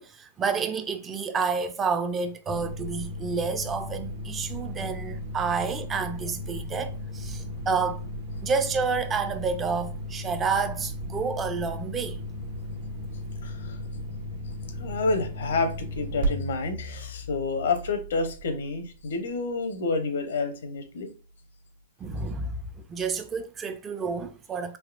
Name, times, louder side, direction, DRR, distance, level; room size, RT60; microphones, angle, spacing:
voice 1, 0.0-8.0 8.4-12.2 22.0-22.5 22.9-24.8, right 5 dB, 20° right, 0.4 m, -29 dB
sound 1, 2.5-18.8, equal, 75° right, 1.3 m, -35 dB
voice 2, 13.4-13.8 14.8-21.1, left 3 dB, 80° left, 0.7 m, -29 dB
3.5 x 2.7 x 2.4 m
hypercardioid pair, 130°, 0 cm